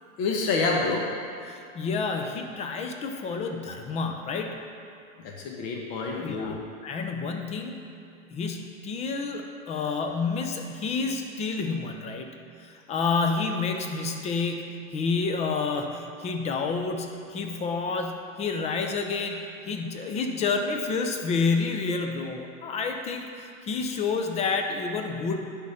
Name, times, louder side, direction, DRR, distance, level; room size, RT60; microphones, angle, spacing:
voice 1, 0.2-1.0 5.2-6.6 9.7-9.9, left 3 dB, 45° left, -1 dB, 1.2 m, -28 dB
voice 2, 1.5-4.6 6.2-7.8 8.3-12.3 12.6-25.4, left 4 dB, 15° left, 4 dB, 0.5 m, -29 dB
10.0 x 3.7 x 5.5 m, 2.7 s
hypercardioid pair, 125°, 41 cm